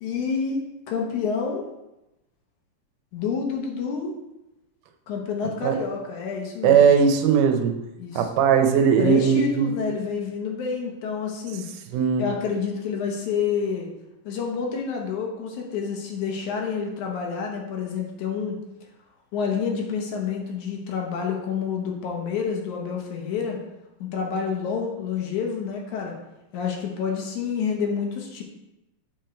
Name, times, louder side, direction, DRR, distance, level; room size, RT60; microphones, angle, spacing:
voice 1, 0.0-1.6 3.1-4.1 5.1-6.8 8.0-8.2 9.0-11.7 12.2-13.9 14.3-18.6 19.3-23.6 24.0-26.2 26.5-28.4, left 6 dB, 70° left, 0 dB, 2.3 m, -28 dB
voice 2, 6.6-7.7 8.2-9.8 11.9-12.3, right 7 dB, 80° right, 6 dB, 2.2 m, -19 dB
7.7 x 4.9 x 4.4 m, 0.93 s
omnidirectional pair, 3.8 m